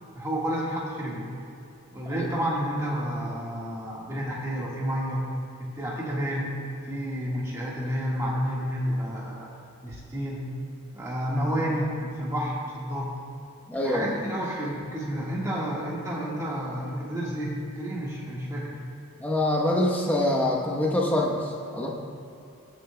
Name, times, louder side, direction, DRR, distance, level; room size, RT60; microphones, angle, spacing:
voice 1, 0.2-1.3 1.9-5.2 5.6-6.5 6.9-9.5 9.8-10.4 10.9-13.1 13.8-18.8, equal, 15° right, -5 dB, 1.5 m, -30 dB
voice 2, 13.7-14.2 19.2-21.9, left 1 dB, 10° left, -2 dB, 0.9 m, -25 dB
21.0 x 7.2 x 2.2 m, 2.5 s
head